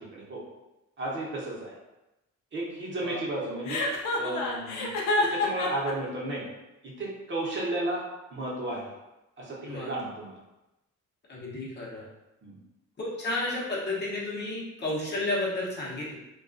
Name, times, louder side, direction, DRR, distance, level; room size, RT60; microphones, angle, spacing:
voice 1, 0.1-0.4 1.0-1.8 2.5-3.8 4.2-4.9 5.2-6.4 6.8-8.0 8.3-8.8 9.4-10.4 12.4-12.6, right 2 dB, 40° right, -4 dB, 0.8 m, -33 dB
Chuckle chortle, 3.7-5.9, left 2 dB, 85° left, 0.5 m, -27 dB
voice 2, 11.3-12.1 13.0-16.2, left 2 dB, 35° left, -6 dB, 0.8 m, -32 dB
2.3 x 2.2 x 2.5 m, 0.95 s
cardioid pair, 90°, 30 cm